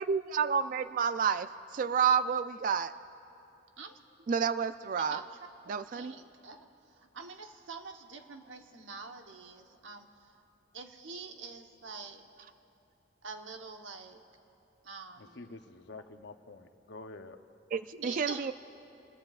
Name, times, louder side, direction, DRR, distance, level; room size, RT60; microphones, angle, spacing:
voice 1, 0.0-2.9 4.3-5.2 5.7-6.1 17.7-18.5, right 6 dB, 45° right, 12 dB, 0.3 m, -30 dB
voice 2, 5.9-10.4 10.7-12.3 13.2-14.2 14.8-15.6 18.0-18.5, right 4 dB, 90° right, 4 dB, 1.1 m, -45 dB
voice 3, 15.2-17.4, left 3 dB, 65° left, 7 dB, 0.8 m, -48 dB
28.0 x 21.0 x 2.4 m, 2.8 s
head